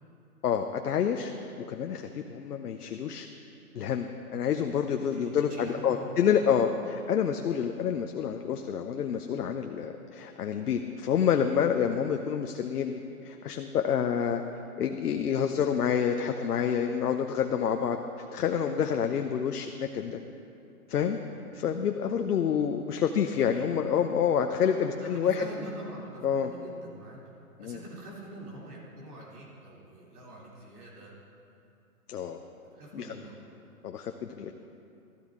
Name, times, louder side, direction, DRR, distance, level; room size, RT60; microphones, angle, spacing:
voice 1, 0.4-1.3 1.6-3.3 3.7-13.0 13.2-14.4 14.8-18.0 18.3-20.2 20.9-21.2 21.5-25.5 26.2-26.5 27.6-27.8 32.1-32.4 32.9-33.1 33.8-34.5, left 8 dB, 80° left, 5 dB, 0.8 m, -28 dB
voice 2, 5.1-6.3 21.3-21.4 23.5-23.6 25.0-27.2 27.6-31.1 32.7-33.3, right 1 dB, 75° right, -4 dB, 3.2 m, -44 dB
13.0 x 13.0 x 3.7 m, 2.6 s
hypercardioid pair, 145°, 45 cm